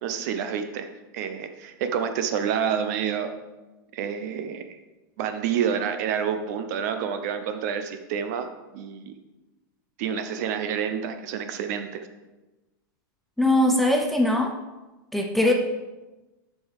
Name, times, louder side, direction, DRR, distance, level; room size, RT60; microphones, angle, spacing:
voice 1, 0.0-0.9 1.1-3.4 3.9-4.6 5.2-8.5 8.7-9.2 10.0-12.1, right 8 dB, 55° right, 8 dB, 0.8 m, -28 dB
voice 2, 13.4-14.6 15.1-15.5, left 1 dB, ahead, 2 dB, 0.5 m, -21 dB
7.7 x 5.6 x 4.9 m, 1.1 s
supercardioid pair, 155°, 11 cm